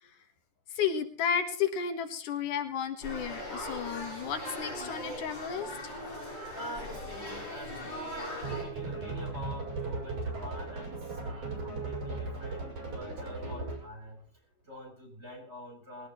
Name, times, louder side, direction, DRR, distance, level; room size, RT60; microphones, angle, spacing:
voice 1, 0.7-5.9, left 7 dB, 80° left, 8 dB, 3.0 m, -33 dB
sound 1, 3.0-8.6, left 1 dB, 35° left, 8.8 m, -39 dB
voice 2, 6.1-14.2 14.6-16.1, equal, 20° right, 0 dB, 8.2 m, -46 dB
sound 2, 8.4-13.9, right 3 dB, 90° right, 7.2 m, -37 dB
21.0 x 18.5 x 3.2 m, 0.43 s
omnidirectional pair, 3.6 m